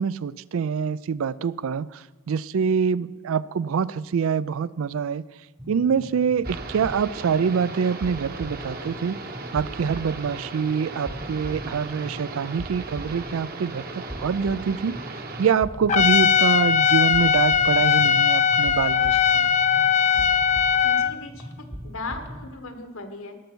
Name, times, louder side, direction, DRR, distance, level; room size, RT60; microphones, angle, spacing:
voice 1, 0.0-5.2 5.7-9.2 9.5-15.0 15.4-19.5, right 6 dB, 75° right, 0.4 m, -25 dB
sound 1, 5.6-22.5, equal, 15° right, 0.8 m, -40 dB
sound 2, 6.4-15.5, right 3 dB, 45° right, 1.0 m, -38 dB
Trumpet, 15.9-21.1, left 7 dB, 35° left, 0.4 m, -19 dB
voice 2, 20.8-23.4, left 2 dB, 75° left, 1.5 m, -37 dB
18.5 x 6.8 x 6.2 m
head